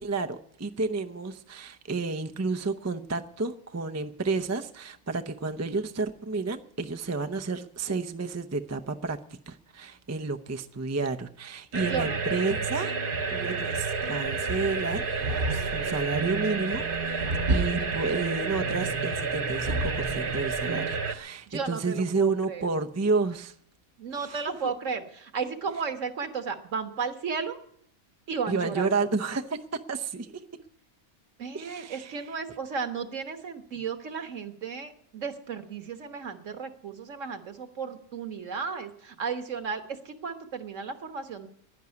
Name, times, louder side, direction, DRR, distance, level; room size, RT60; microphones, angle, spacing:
voice 1, 0.0-9.2 9.5-12.9 13.3-16.9 17.5-23.5 24.2-24.6 28.5-30.4 31.5-32.1, right 4 dB, 25° right, 7 dB, 0.3 m, -31 dB
sound 1, 11.7-21.1, right 4 dB, 45° right, 1.0 m, -29 dB
voice 2, 11.8-12.2 21.5-22.7 24.0-27.6 28.3-29.1 31.4-41.5, right 5 dB, 60° right, 8 dB, 1.6 m, -34 dB
11.0 x 10.5 x 9.7 m, 0.66 s
omnidirectional pair, 1.5 m